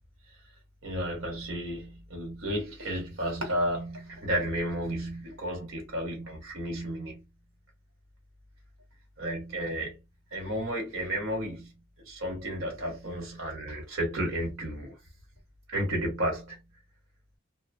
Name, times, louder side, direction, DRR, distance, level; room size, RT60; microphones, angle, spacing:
voice 1, 0.8-7.2 9.2-10.0 10.3-11.7 12.0-14.9 15.7-16.6, equal, 85° right, 1.3 m, -32 dB
2.7 x 2.1 x 2.6 m
head